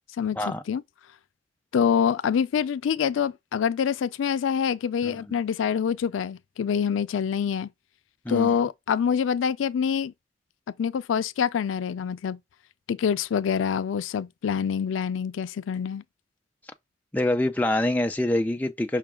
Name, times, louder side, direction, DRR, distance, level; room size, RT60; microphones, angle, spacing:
voice 1, 0.2-0.8 1.7-7.7 8.3-10.1 10.8-12.4 12.9-16.0, left 7 dB, 85° left, 0.4 m, -26 dB
voice 2, 17.1-19.0, left 1 dB, 10° left, 0.4 m, -25 dB
5.8 x 2.2 x 3.6 m
head